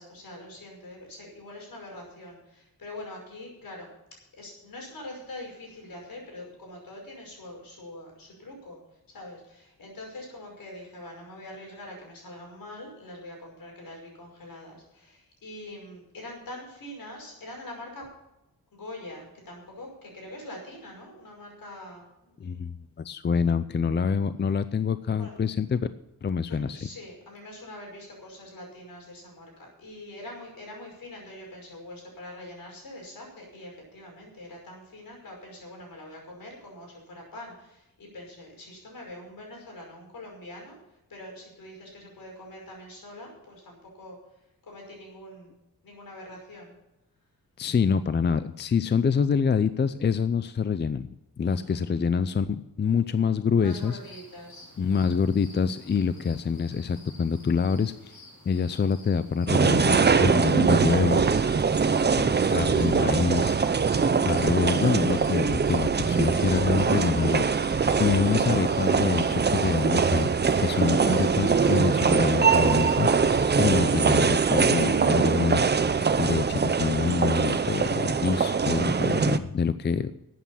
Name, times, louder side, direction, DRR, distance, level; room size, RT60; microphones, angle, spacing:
voice 1, 0.0-3.9 4.3-8.8 9.1-18.0 18.7-22.6 25.2-25.3 26.7-40.8 41.1-44.2 44.6-45.6 45.8-46.7 51.4-51.9 53.6-55.1, left 1 dB, 70° left, 0 dB, 5.6 m, -44 dB
voice 2, 22.4-25.9 26.2-26.9 47.6-51.1 51.4-54.0 54.8-61.2 62.2-70.3 70.6-80.1, left 6 dB, 30° left, 13 dB, 0.5 m, -26 dB
sound 1, 53.7-73.5, left 2 dB, 50° left, 5.1 m, -51 dB
sound 2, 59.5-79.4, right 5 dB, 30° right, 0.6 m, -23 dB
13.0 x 8.6 x 7.1 m, 0.91 s
wide cardioid pair, 135°, 35 cm